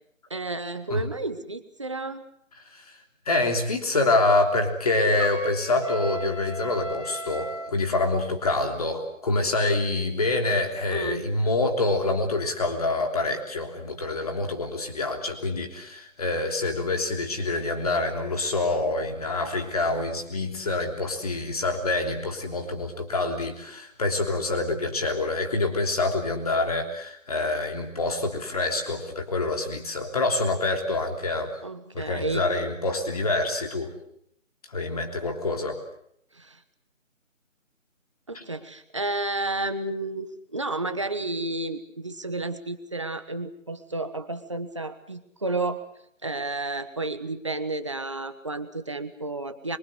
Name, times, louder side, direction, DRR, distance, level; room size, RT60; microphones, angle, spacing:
voice 1, 0.3-2.2 10.9-11.3 31.6-32.4 36.3-36.6 38.3-45.8 46.2-49.8, right 2 dB, 20° right, 10 dB, 1.2 m, -31 dB
voice 2, 3.2-31.6 31.9-33.9 34.7-35.8 38.3-38.4, left 2 dB, 30° left, 4 dB, 3.4 m, -26 dB
Trumpet, 5.2-7.7, right 1 dB, 65° left, 3.0 m, -35 dB
25.5 x 24.0 x 8.1 m, 0.71 s
figure-of-eight pair, 170°, 40 cm